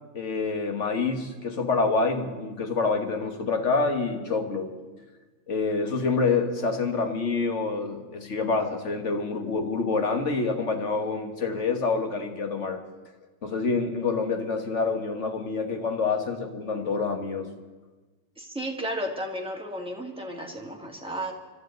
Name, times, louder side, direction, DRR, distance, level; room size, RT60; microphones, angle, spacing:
voice 1, 0.1-4.7 5.5-12.8 13.4-17.5, left 4 dB, 40° left, 5 dB, 1.7 m, -27 dB
voice 2, 18.4-21.3, equal, 5° right, 0 dB, 2.0 m, -33 dB
25.0 x 13.0 x 4.0 m, 1.3 s
omnidirectional pair, 2.0 m